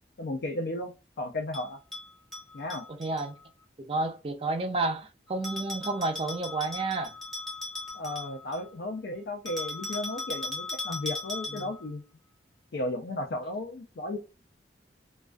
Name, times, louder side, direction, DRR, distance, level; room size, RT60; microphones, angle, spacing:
voice 1, 0.2-0.9 1.2-1.8 2.5-2.9 7.9-12.0 12.7-14.2, left 1 dB, 65° left, 0.4 m, -34 dB
Bell, 1.5-3.3 5.4-8.7 9.5-11.9, left 3 dB, ahead, 0.8 m, -38 dB
voice 2, 3.0-3.3 3.8-7.1 11.5-11.7, right 3 dB, 30° right, 0.4 m, -31 dB
2.3 x 2.2 x 2.4 m
head